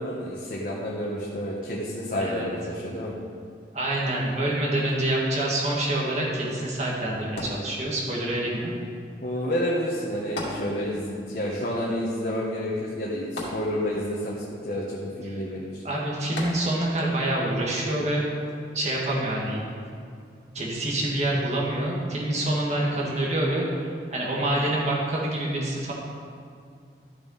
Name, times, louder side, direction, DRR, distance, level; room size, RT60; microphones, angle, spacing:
voice 1, 0.0-3.1 9.2-15.8, equal, 50° left, -6 dB, 1.4 m, -29 dB
voice 2, 2.2-2.5 3.7-8.7 15.3-15.4 15.8-18.3 18.7-19.6 20.5-23.7 24.1-25.9, right 1 dB, 40° right, -4 dB, 2.1 m, -26 dB
sound 1, 7.4-8.3 10.4-11.2 11.5-11.6 13.4-14.2 16.4-17.1 17.8-17.9, left 1 dB, 90° left, 2.4 m, -35 dB
12.5 x 7.5 x 4.1 m, 2.3 s
head